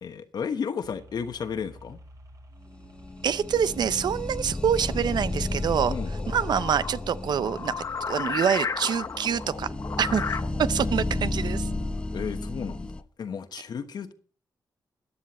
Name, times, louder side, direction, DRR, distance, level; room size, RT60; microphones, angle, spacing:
voice 1, 0.0-2.0 5.9-6.2 10.4-14.1, left 6 dB, 65° left, 1.2 m, -34 dB
sound 1, 0.8-12.3, equal, 50° right, 3.6 m, -51 dB
sound 2, 2.9-13.0, left 2 dB, 15° left, 0.6 m, -33 dB
voice 2, 3.2-5.9 6.3-7.7 8.1-9.7 10.0-10.2 10.7-11.7, right 8 dB, 70° right, 0.6 m, -26 dB
sound 3, 3.4-10.4, left 5 dB, 45° left, 0.9 m, -35 dB
14.0 x 10.0 x 4.2 m
cardioid pair, 95°, 8 cm